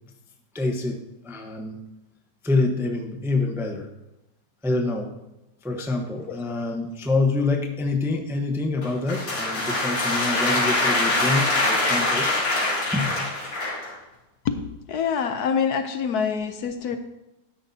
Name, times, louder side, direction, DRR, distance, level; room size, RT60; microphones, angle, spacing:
voice 1, 0.5-1.0 1.2-1.8 2.4-3.9 4.6-5.1 5.6-12.3 12.9-13.2 16.9-17.0, left 3 dB, ahead, 2 dB, 0.6 m, -26 dB
sound 1, 8.8-13.9, left 2 dB, 85° left, 3.3 m, -24 dB
voice 2, 14.4-17.0, left 6 dB, 65° left, 8 dB, 1.1 m, -26 dB
12.5 x 10.5 x 2.8 m, 0.94 s
omnidirectional pair, 1.9 m